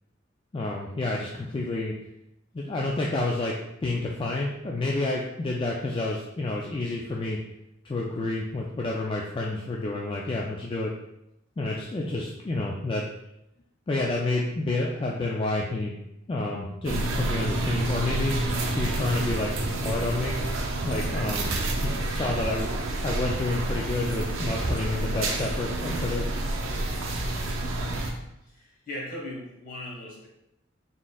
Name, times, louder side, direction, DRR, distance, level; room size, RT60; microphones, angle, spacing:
voice 1, 0.5-1.9 2.5-3.5 3.8-7.4 7.8-10.9 11.6-13.1 13.9-15.9 16.3-18.3 18.8-19.5 19.8-20.4 20.8-22.7 23.0-26.3, left 2 dB, 25° left, -2 dB, 0.3 m, -29 dB
sound 1, 16.8-28.1, right 1 dB, 80° right, 0.6 m, -28 dB
voice 2, 28.4-30.3, left 1 dB, 45° left, -4 dB, 1.4 m, -38 dB
4.1 x 3.7 x 2.3 m, 0.85 s
head